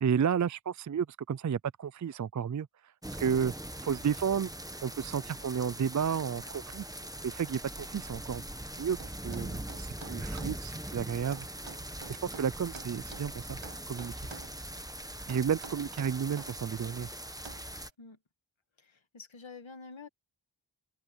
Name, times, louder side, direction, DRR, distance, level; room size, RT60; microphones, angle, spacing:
voice 1, 0.0-2.7 3.2-3.5 3.8-4.5 4.8-6.8 7.2-8.4 8.8-9.0 9.2-11.5 12.1-13.6 13.9-14.1 15.3-17.1, right 7 dB, 40° right, 0.4 m, -32 dB
sound 1, 3.0-17.9, right 1 dB, 10° right, 1.2 m, -41 dB
sound 2, 9.0-10.6 11.3-13.3 13.6-14.6 15.3-16.5 17.4-17.7, right 5 dB, 80° right, 1.4 m, -48 dB
voice 2, 18.8-20.1, left 4 dB, 80° left, 1.9 m, -48 dB
open air
wide cardioid pair, 50°, 46 cm